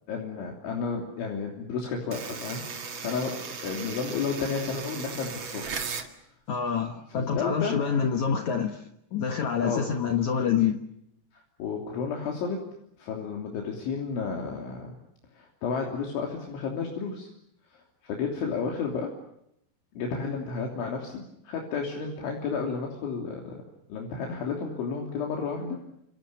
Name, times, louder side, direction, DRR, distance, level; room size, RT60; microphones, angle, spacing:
voice 1, 0.1-2.6 2.9-5.8 7.1-7.8 9.6-9.9 11.3-12.6 13.0-15.0 15.3-17.3 17.7-19.1 20.0-23.6 23.9-25.8, left 5 dB, 70° left, 0 dB, 5.5 m, -32 dB
door apartment buzzer unlock ext, 2.1-6.1, right 5 dB, 55° right, 1.3 m, -37 dB
voice 2, 6.5-8.8 9.1-10.8, left 7 dB, 90° left, 5 dB, 1.6 m, -26 dB
30.0 x 27.5 x 6.8 m, 0.78 s
omnidirectional pair, 5.7 m